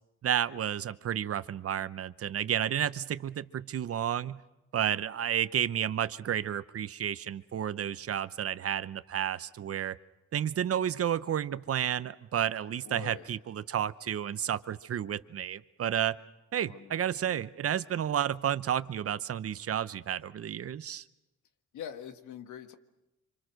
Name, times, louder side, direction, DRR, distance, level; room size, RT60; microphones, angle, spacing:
voice 1, 0.2-4.4 4.7-10.0 10.3-16.2 16.5-21.0, right 10 dB, 50° right, 15 dB, 0.8 m, -31 dB
voice 2, 12.8-13.2 16.7-17.0 17.2-17.4 21.7-22.8, left 9 dB, 75° left, 9 dB, 1.7 m, -44 dB
26.0 x 26.0 x 6.5 m, 0.94 s
cardioid pair, 90°, 30 cm